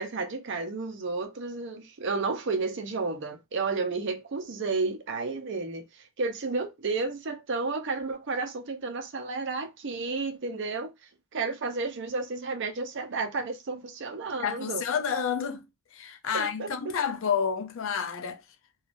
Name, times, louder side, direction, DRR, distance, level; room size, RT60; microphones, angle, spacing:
voice 1, 0.0-10.9 11.3-14.8 16.3-16.7, right 3 dB, 55° right, 0.6 m, -32 dB
voice 2, 14.4-15.7 15.9-18.4, left 7 dB, 60° left, 0.5 m, -29 dB
3.3 x 2.3 x 2.5 m
head